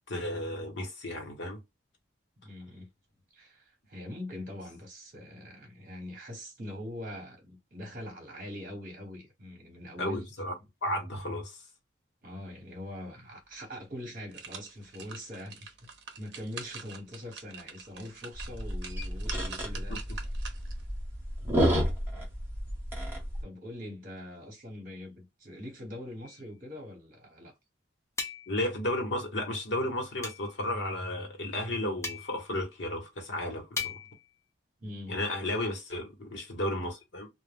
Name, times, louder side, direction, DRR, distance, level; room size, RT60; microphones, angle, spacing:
voice 1, 0.1-1.6 10.0-10.5 10.8-11.6 19.9-20.0 28.5-34.0 35.1-37.3, left 1 dB, 70° left, 1.0 m, -33 dB
voice 2, 2.4-2.9 3.3-10.3 12.2-15.9 16.2-20.3 23.4-27.5 34.8-35.2, left 1 dB, 45° right, 1.0 m, -43 dB
sound 1, 13.4-13.5 14.0-20.9 21.3-21.4, right 5 dB, 60° right, 0.7 m, -46 dB
sound 2, 18.3-23.4, equal, 10° right, 0.8 m, -31 dB
sound 3, 26.2-26.5 28.2-28.7 30.2-30.6 32.0-32.5 33.8-34.3, left 4 dB, 15° left, 0.5 m, -38 dB
2.3 x 2.1 x 3.3 m
head